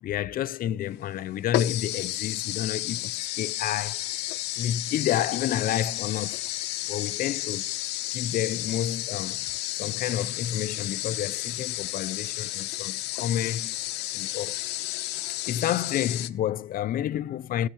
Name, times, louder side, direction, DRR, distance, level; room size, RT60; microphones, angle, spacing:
voice 1, 0.0-3.1 3.4-4.1 4.6-6.4 6.9-7.7 8.1-9.5 9.7-13.8 14.1-14.6 15.1-17.7, left 11 dB, 60° left, 0.6 m, -30 dB
sound 1, 0.9-1.0 1.5-16.3, left 17 dB, 85° left, 0.9 m, -32 dB
sound 2, 2.8-17.0, left 4 dB, 40° left, 5.4 m, -55 dB
16.0 x 13.5 x 3.1 m
cardioid pair, 110°, 17 cm